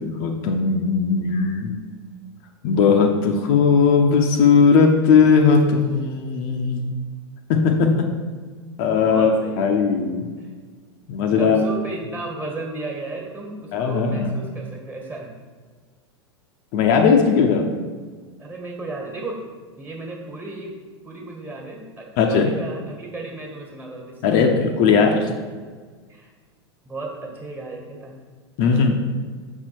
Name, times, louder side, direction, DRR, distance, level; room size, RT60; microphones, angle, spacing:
voice 1, 0.0-1.7 2.6-7.0 7.5-8.1 8.8-10.3 11.1-11.6 13.7-14.3 16.7-17.7 22.2-22.5 24.2-25.2 28.6-29.0, left 5 dB, 50° left, 3 dB, 0.7 m, -18 dB
voice 2, 8.8-9.9 10.4-10.5 11.3-15.4 18.4-19.4 19.8-20.8 21.0-24.4 24.8-25.0 26.1-26.3 26.8-28.2 28.7-28.8, right 2 dB, 15° right, 0 dB, 1.6 m, -34 dB
6.0 x 4.4 x 4.5 m, 1.5 s
hypercardioid pair, 90°, 15 cm